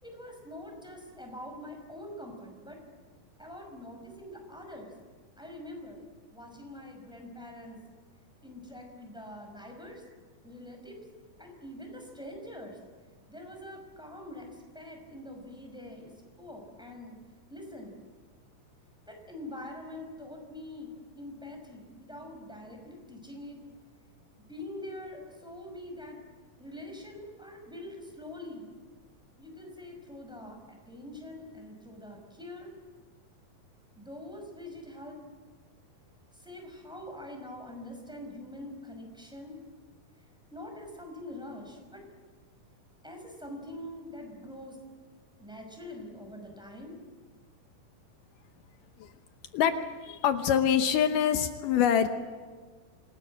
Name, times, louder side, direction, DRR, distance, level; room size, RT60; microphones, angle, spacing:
voice 1, 0.0-2.8 3.4-4.9 5.4-6.0 6.3-7.8 8.4-10.0 10.4-11.0 11.4-12.8 13.3-17.2 17.5-18.0 19.1-23.6 24.5-26.2 26.6-28.7 29.4-32.7 34.0-35.2 36.3-39.6 40.5-42.0 43.0-44.8 45.4-47.0, left 1 dB, ahead, 2 dB, 5.4 m, -44 dB
voice 2, 50.0-52.1, left 9 dB, 80° left, 8 dB, 2.6 m, -25 dB
27.0 x 20.0 x 7.7 m, 1.5 s
omnidirectional pair, 3.8 m